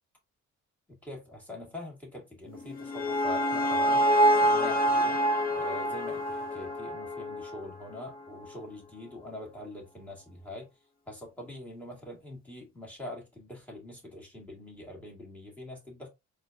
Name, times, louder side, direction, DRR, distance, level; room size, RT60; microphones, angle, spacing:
voice 1, 0.9-4.0 4.4-5.2 5.5-10.7 11.1-16.1, left 1 dB, 5° left, 1.8 m, -43 dB
sound 1, 2.6-7.7, equal, 30° left, 0.7 m, -26 dB
4.2 x 2.4 x 2.5 m
cardioid pair, 90°, 30 cm